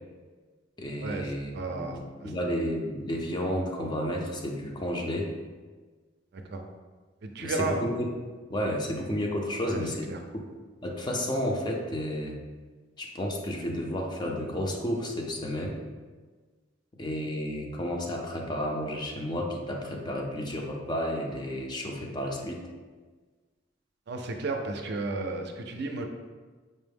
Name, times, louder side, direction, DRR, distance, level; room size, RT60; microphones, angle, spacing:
voice 1, 0.8-5.3 7.4-8.1 8.5-10.5 10.8-12.4 13.0-15.8 17.0-22.6, equal, 25° left, 1 dB, 0.5 m, -32 dB
voice 2, 1.5-2.3 6.3-6.6 7.2-7.8 9.6-9.8 10.1-10.2 24.1-26.0, right 3 dB, 60° right, 4 dB, 0.4 m, -33 dB
5.3 x 2.0 x 3.4 m, 1.4 s
head